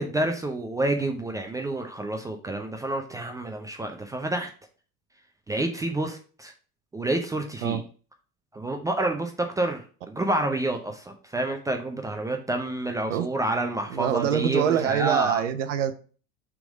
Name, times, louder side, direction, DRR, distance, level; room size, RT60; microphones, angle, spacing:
voice 1, 0.0-4.5 5.5-6.5 6.9-7.8 8.5-15.4, right 2 dB, 10° right, 4 dB, 0.6 m, -28 dB
voice 2, 13.9-15.9, right 9 dB, 55° right, 11 dB, 0.7 m, -24 dB
6.0 x 3.7 x 4.8 m, 0.38 s
figure-of-eight pair, 80°, 44 cm